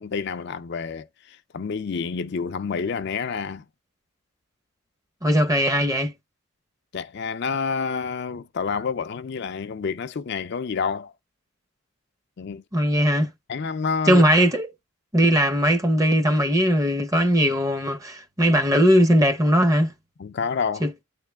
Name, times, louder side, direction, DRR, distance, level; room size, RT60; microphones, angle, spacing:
voice 1, 0.0-3.6 6.9-11.1 12.4-12.6 13.5-14.3 20.2-20.9, left 5 dB, 50° left, 0.4 m, -28 dB
voice 2, 5.2-6.1 12.7-13.3 14.1-14.7 15.1-19.9 20.8-20.9, equal, 15° right, 0.7 m, -19 dB
8.8 x 3.2 x 3.4 m
head